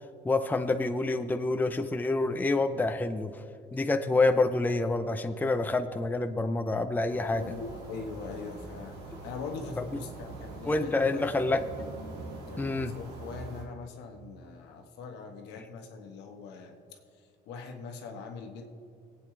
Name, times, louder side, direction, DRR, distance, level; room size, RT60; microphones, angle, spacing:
voice 1, 0.2-3.4 3.7-7.4 9.8-9.9 10.7-11.6 12.6-12.9, left 2 dB, 10° left, 8 dB, 0.5 m, -27 dB
sound 1, 7.1-13.6, right 2 dB, 80° right, 2.2 m, -43 dB
voice 2, 7.2-11.4 12.5-16.8 17.5-18.6, left 4 dB, 85° left, 3 dB, 1.4 m, -42 dB
24.0 x 8.7 x 3.3 m, 2.3 s
cardioid pair, 110°, 17 cm